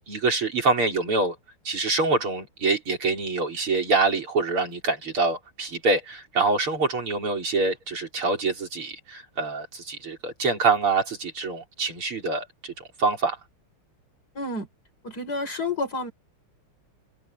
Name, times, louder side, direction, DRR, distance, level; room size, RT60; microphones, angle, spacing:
voice 1, 0.1-1.4 1.7-12.7 13.0-13.4, right 3 dB, 85° right, 5.7 m, -25 dB
voice 2, 14.3-14.7 15.0-16.1, left 2 dB, 45° left, 6.7 m, -29 dB
omnidirectional pair, 2.3 m